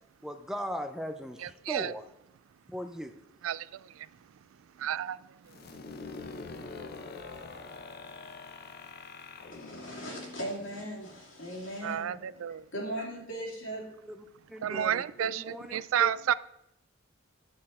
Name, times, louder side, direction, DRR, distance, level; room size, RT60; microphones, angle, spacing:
voice 1, 0.2-2.0 2.7-3.1 14.1-14.2 14.5-16.1, equal, 5° right, 0.5 m, -38 dB
voice 2, 1.4-1.9 3.4-4.1 4.8-5.5 11.8-12.6 14.6-16.3, right 10 dB, 90° right, 0.3 m, -31 dB
sound 1, 5.5-11.2, left 3 dB, 50° left, 0.7 m, -45 dB
voice 3, 9.5-12.2 12.7-13.9, right 1 dB, 70° left, 2.8 m, -38 dB
9.5 x 6.6 x 4.2 m
head